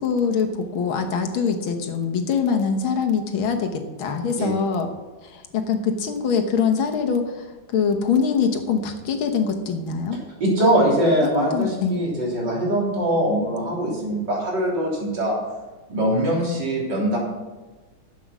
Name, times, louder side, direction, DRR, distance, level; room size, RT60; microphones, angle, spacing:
voice 1, 0.0-4.9 5.2-10.2 11.2-12.0, left 6 dB, 90° left, 5 dB, 2.0 m, -23 dB
voice 2, 10.4-15.4 15.9-17.2, right 1 dB, 60° right, -3 dB, 3.9 m, -22 dB
11.5 x 8.0 x 6.1 m, 1.2 s
omnidirectional pair, 2.2 m